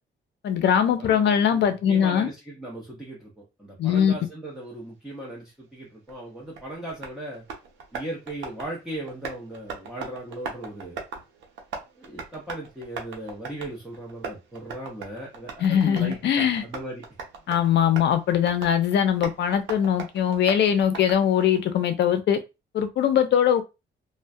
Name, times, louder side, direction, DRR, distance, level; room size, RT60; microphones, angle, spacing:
voice 1, 0.4-2.3 3.8-4.1 15.6-16.6 17.5-22.4 22.7-23.6, left 9 dB, 60° left, 0.5 m, -21 dB
voice 2, 1.0-7.4 7.9-11.0 12.0-17.0, right 1 dB, ahead, 0.7 m, -37 dB
Tap, 6.1-21.6, right 5 dB, 75° right, 0.7 m, -41 dB
2.2 x 2.1 x 2.6 m
cardioid pair, 90°, 20 cm